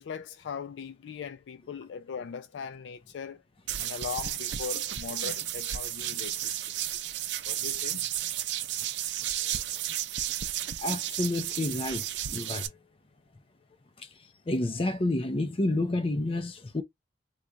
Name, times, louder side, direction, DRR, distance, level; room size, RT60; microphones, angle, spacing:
voice 1, 0.0-3.4 3.8-6.6 7.5-8.1, left 6 dB, 85° left, 0.3 m, -39 dB
sound 1, 3.7-12.7, right 12 dB, 75° right, 0.5 m, -33 dB
voice 2, 10.8-12.7 14.5-16.8, left 2 dB, 30° left, 0.6 m, -29 dB
3.1 x 2.3 x 3.8 m
head